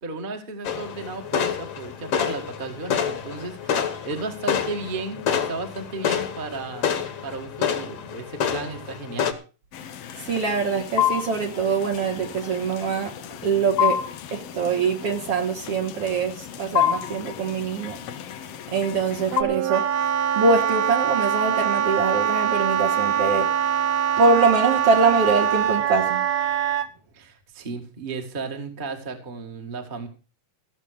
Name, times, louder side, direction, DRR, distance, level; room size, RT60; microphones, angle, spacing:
voice 1, 0.0-6.9 7.2-9.3 27.1-30.1, right 3 dB, 20° right, 1.5 m, -34 dB
sound 1, 0.7-9.3, left 8 dB, 55° left, 2.1 m, -28 dB
sound 2, 9.7-19.4, left 11 dB, 75° left, 1.4 m, -30 dB
voice 2, 10.2-13.1 13.4-14.0 14.3-18.0 18.7-19.9 20.4-23.8 24.2-26.2, right 4 dB, 55° right, 2.1 m, -23 dB
Wind instrument woodwind instrument, 19.3-26.9, right 8 dB, 70° right, 1.7 m, -23 dB
16.0 x 7.4 x 6.5 m
omnidirectional pair, 3.8 m